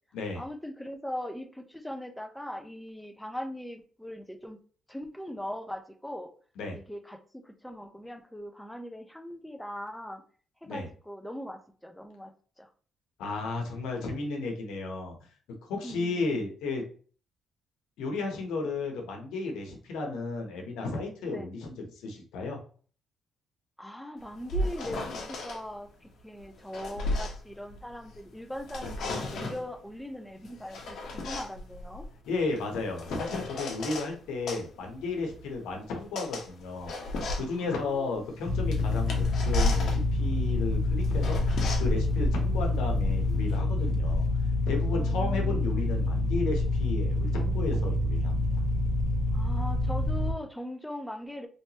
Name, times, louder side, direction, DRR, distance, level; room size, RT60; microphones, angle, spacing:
voice 1, 0.4-4.6 4.9-6.3 6.7-10.2 10.6-12.3 12.6-12.7 15.8-16.3 21.3-21.5 23.8-32.1 37.4-38.2 44.9-45.7 49.3-51.5, equal, 5° left, 5 dB, 0.6 m, -40 dB
voice 2, 13.2-15.1 15.7-16.8 18.0-22.6 32.3-36.9 37.3-44.3 44.7-48.6, left 3 dB, 90° left, 2 dB, 1.0 m, -33 dB
sound 1, 24.2-25.6 26.4-28.2 28.5-29.7 30.4-34.1 34.5-43.6, left 2 dB, 65° left, 1.0 m, -35 dB
sound 2, 38.4-50.3, left 2 dB, 35° left, 1.0 m, -27 dB
3.3 x 2.9 x 2.9 m, 0.42 s
cardioid pair, 90°, 0 cm